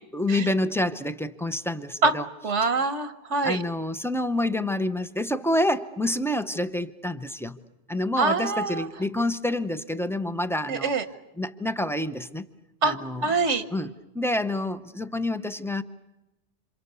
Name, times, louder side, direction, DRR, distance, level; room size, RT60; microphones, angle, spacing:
voice 1, 0.1-2.3 2.6-2.7 3.4-7.6 7.9-10.9 11.4-12.4 12.8-13.2 13.7-15.8, left 1 dB, 5° left, 11 dB, 0.6 m, -28 dB
voice 2, 2.4-3.6 8.2-8.9 10.7-11.0 12.8-13.0 13.2-13.6, right 3 dB, 85° right, 10 dB, 1.4 m, -24 dB
28.0 x 26.5 x 6.8 m, 1.0 s
omnidirectional pair, 1.2 m